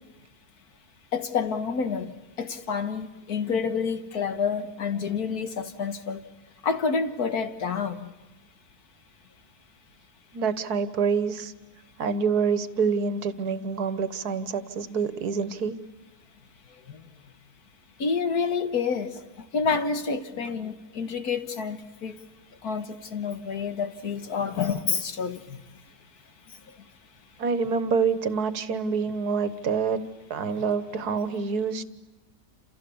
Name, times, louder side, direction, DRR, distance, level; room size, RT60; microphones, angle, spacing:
voice 1, 1.1-6.2 6.6-8.1 16.9-17.0 18.0-22.2 22.6-25.6, left 5 dB, 80° left, 2.0 m, -28 dB
voice 2, 10.3-11.5 12.0-15.8 27.4-30.0 30.3-31.8, right 5 dB, 85° right, 1.8 m, -26 dB
29.5 x 28.0 x 7.1 m
omnidirectional pair, 1.6 m